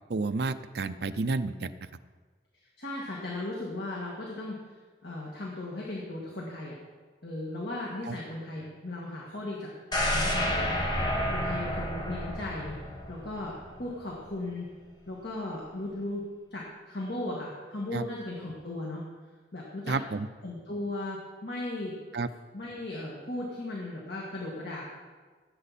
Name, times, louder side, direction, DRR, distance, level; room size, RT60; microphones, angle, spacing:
voice 1, 0.1-1.7 8.1-8.2 17.9-18.0 19.9-20.3 22.1-22.3, right 3 dB, 60° right, 11 dB, 0.5 m, -30 dB
voice 2, 2.8-4.6 5.0-6.8 7.2-9.7 10.0-12.8 13.1-14.7 15.1-16.2 16.5-19.0 19.5-19.9 20.4-21.9 22.5-24.9, left 2 dB, 65° left, -3 dB, 1.9 m, -37 dB
sound 1, 9.9-13.9 14.3-14.4, equal, 25° left, 1.5 m, -30 dB
16.5 x 8.0 x 4.2 m, 1.4 s
head